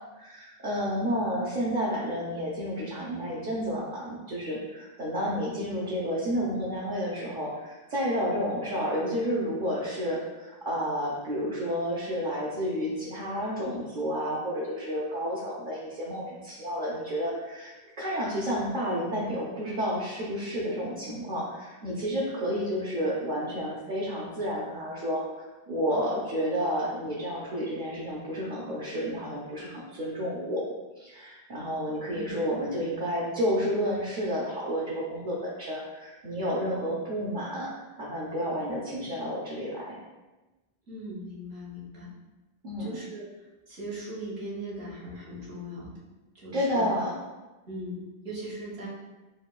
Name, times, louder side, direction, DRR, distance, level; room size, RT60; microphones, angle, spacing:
voice 1, 0.2-25.2 25.7-30.6 31.0-37.7 38.0-40.0 42.6-43.0 46.5-47.1, equal, 55° right, -6 dB, 0.8 m, -30 dB
voice 2, 40.9-42.1 42.8-43.2 43.7-45.9 46.3-46.9 47.7-48.9, right 1 dB, 80° right, -7 dB, 1.5 m, -39 dB
6.1 x 2.2 x 2.3 m, 1.1 s
omnidirectional pair, 1.0 m